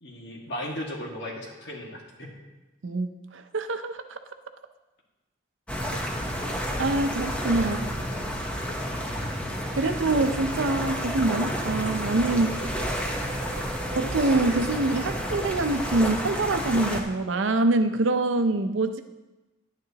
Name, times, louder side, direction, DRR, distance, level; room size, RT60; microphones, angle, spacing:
voice 1, 0.0-2.3 7.6-8.6 8.9-9.3, left 1 dB, 60° left, -2 dB, 1.9 m, -38 dB
voice 2, 2.8-4.2 6.8-7.8 9.8-12.6 13.9-19.0, right 2 dB, 80° right, 9 dB, 0.6 m, -25 dB
sound 1, 5.7-17.0, equal, 5° left, 0.9 m, -30 dB
sound 2, 10.6-16.3, right 3 dB, 40° right, 1.0 m, -42 dB
10.5 x 9.6 x 2.9 m, 1.1 s
head